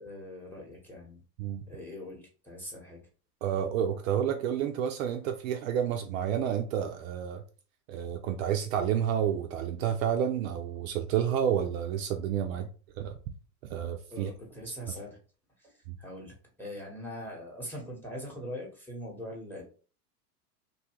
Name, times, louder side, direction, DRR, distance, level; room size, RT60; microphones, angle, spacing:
voice 1, 0.0-1.2 1.7-3.0 12.5-12.6 14.1-15.2 15.6-19.6, equal, 5° left, -1 dB, 0.9 m, -42 dB
voice 2, 3.4-7.4 7.9-12.7 13.0-13.1 13.7-14.3 15.9-16.0, right 9 dB, 55° right, 4 dB, 0.5 m, -30 dB
2.8 x 2.3 x 2.8 m, 0.37 s
hypercardioid pair, 110°, 50 cm